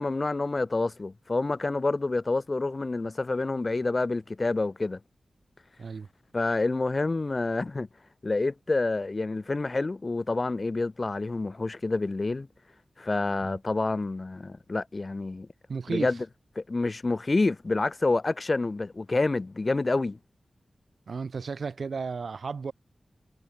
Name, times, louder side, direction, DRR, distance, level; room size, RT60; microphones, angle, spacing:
voice 1, 0.0-5.0 6.3-7.9 8.2-12.5 13.0-15.5 15.9-16.2 16.6-20.2, left 3 dB, 40° left, 0.7 m, -28 dB
voice 2, 15.7-16.2 21.1-22.7, right 5 dB, 75° right, 2.8 m, -34 dB
cardioid pair, 55°, 0 cm